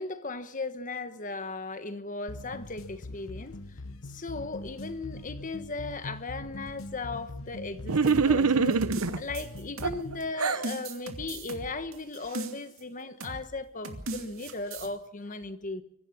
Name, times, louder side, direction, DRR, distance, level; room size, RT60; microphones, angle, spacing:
voice 1, 0.0-3.6 4.0-15.8, left 3 dB, 35° left, 1.3 m, -37 dB
sound 1, 2.3-10.3, left 2 dB, 70° left, 1.0 m, -42 dB
sound 2, 7.9-9.2 9.8-10.7, right 5 dB, 90° right, 0.9 m, -24 dB
sound 3, 8.1-10.2 10.6-12.8 13.2-13.5 13.8-14.9, right 2 dB, 70° right, 2.5 m, -38 dB
24.0 x 15.5 x 7.2 m
head